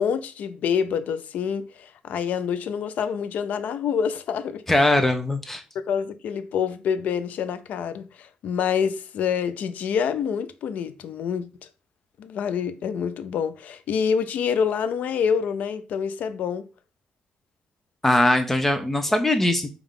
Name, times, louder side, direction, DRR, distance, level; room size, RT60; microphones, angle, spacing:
voice 1, 0.0-4.9 5.7-11.5 12.2-16.6, left 7 dB, 75° left, 0.4 m, -27 dB
voice 2, 4.7-5.6 18.0-19.7, left 1 dB, 10° left, 0.4 m, -21 dB
5.3 x 2.3 x 3.6 m
cardioid pair, 155°, 3 cm